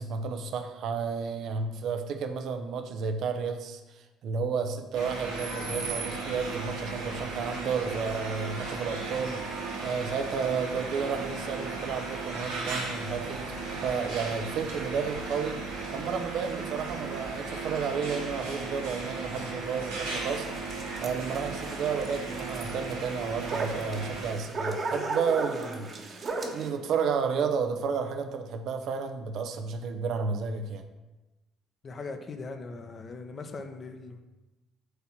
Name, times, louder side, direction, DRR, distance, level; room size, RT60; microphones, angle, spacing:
voice 1, 0.0-13.6 13.8-15.7 15.9-20.5 21.0-30.8, right 5 dB, 55° right, 7 dB, 0.8 m, -32 dB
sound 1, 4.9-24.3, right 3 dB, 75° right, 2.5 m, -36 dB
sound 2, 20.0-26.7, right 3 dB, 40° right, 1.4 m, -36 dB
voice 2, 31.8-34.2, left 3 dB, 40° left, 6 dB, 1.0 m, -40 dB
8.0 x 4.1 x 6.2 m, 1.1 s
figure-of-eight pair, 50°, 0 cm